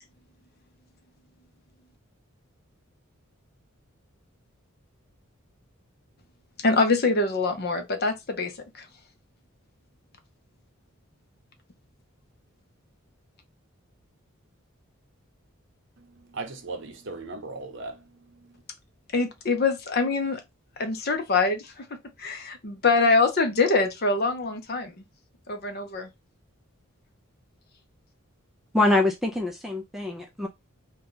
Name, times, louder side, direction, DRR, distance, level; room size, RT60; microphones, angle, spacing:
voice 1, 6.6-8.9 19.1-20.4 20.8-25.0 25.5-26.1, left 3 dB, 45° left, 0.7 m, -24 dB
voice 2, 16.0-18.6, right 3 dB, 60° right, 0.7 m, -38 dB
voice 3, 28.7-30.5, left 2 dB, ahead, 0.4 m, -24 dB
2.7 x 2.3 x 3.7 m
head